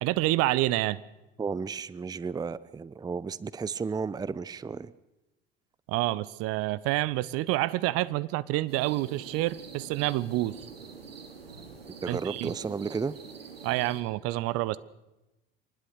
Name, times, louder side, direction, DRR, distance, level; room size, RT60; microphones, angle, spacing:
voice 1, 0.0-1.0 5.9-10.6 12.1-12.5 13.6-14.8, right 17 dB, 50° right, 19 dB, 0.9 m, -28 dB
voice 2, 1.4-4.9 12.0-13.2, right 5 dB, 15° right, 19 dB, 0.7 m, -33 dB
sound 1, 8.7-14.0, right 5 dB, 80° right, 2.7 m, -46 dB
24.5 x 20.0 x 6.5 m, 0.99 s
figure-of-eight pair, 65°, 30 cm